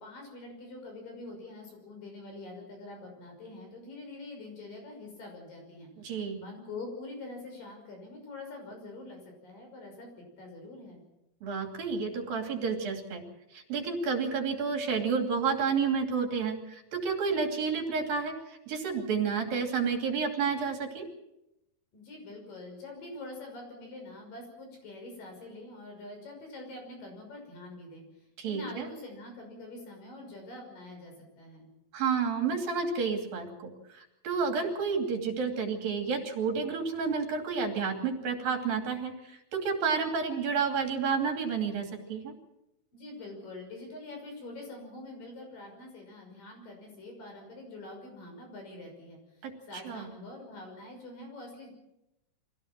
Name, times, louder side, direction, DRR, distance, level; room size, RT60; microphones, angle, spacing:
voice 1, 0.0-10.1 10.4-11.0 21.9-31.7 42.9-51.7, left 2 dB, 65° left, 2 dB, 7.7 m, -45 dB
voice 2, 6.0-6.4 11.4-13.2 13.5-21.1 28.4-28.9 31.9-42.4 49.4-50.1, right 5 dB, 70° right, 3 dB, 4.5 m, -30 dB
25.0 x 16.5 x 7.5 m, 0.90 s
omnidirectional pair, 4.3 m